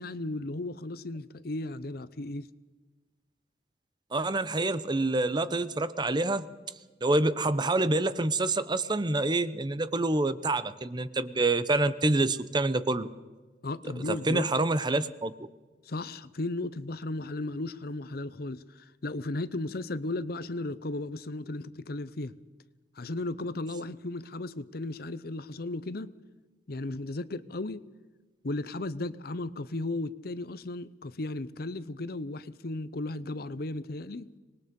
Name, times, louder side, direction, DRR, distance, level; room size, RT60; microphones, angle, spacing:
voice 1, 0.0-2.5 13.6-14.5 15.8-22.4 23.0-26.2 26.7-27.9 28.4-34.3, left 2 dB, 60° left, 0.8 m, -35 dB
voice 2, 4.1-6.5 7.0-13.1 14.2-15.3, right 2 dB, 25° right, 0.8 m, -27 dB
25.5 x 20.5 x 5.3 m
head